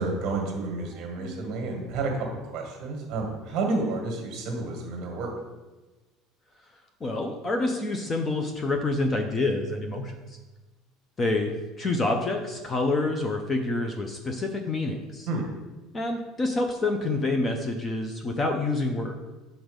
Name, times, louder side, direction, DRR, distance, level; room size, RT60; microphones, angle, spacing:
voice 1, 0.0-2.1 2.5-5.3 15.3-15.5, right 3 dB, 40° right, 1 dB, 1.5 m, -30 dB
voice 2, 0.9-1.5 7.0-10.2 11.2-15.3 15.9-19.2, left 2 dB, 15° left, 4 dB, 0.4 m, -27 dB
6.2 x 3.9 x 5.1 m, 1.2 s
cardioid pair, 175°, 0 cm